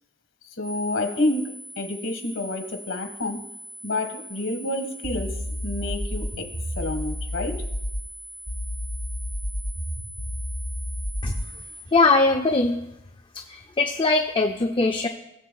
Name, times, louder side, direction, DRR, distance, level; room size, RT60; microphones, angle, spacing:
voice 1, 0.5-3.4 3.8-7.6, left 2 dB, 75° left, 7 dB, 1.7 m, -29 dB
sound 1, 0.6-11.8, equal, 5° right, 2.2 m, -42 dB
sound 2, 5.0-8.0 8.5-11.5, left 1 dB, 75° right, 4.1 m, -31 dB
voice 2, 11.9-12.8 13.5-15.1, left 3 dB, 25° left, 4 dB, 0.5 m, -21 dB
19.5 x 7.3 x 2.3 m, 0.87 s
head